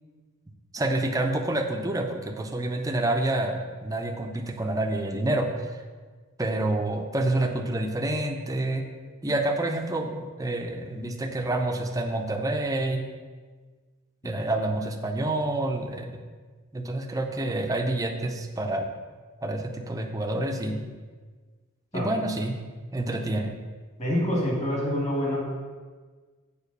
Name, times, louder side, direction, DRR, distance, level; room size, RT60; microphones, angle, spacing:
voice 1, 0.7-5.8 6.4-8.8 9.2-13.0 14.2-16.1 16.7-18.9 19.4-20.8 21.9-22.6 22.9-23.5, right 2 dB, 15° right, 4 dB, 0.7 m, -28 dB
voice 2, 24.0-25.4, equal, 35° left, -2 dB, 2.3 m, -26 dB
7.1 x 5.0 x 6.8 m, 1.4 s
head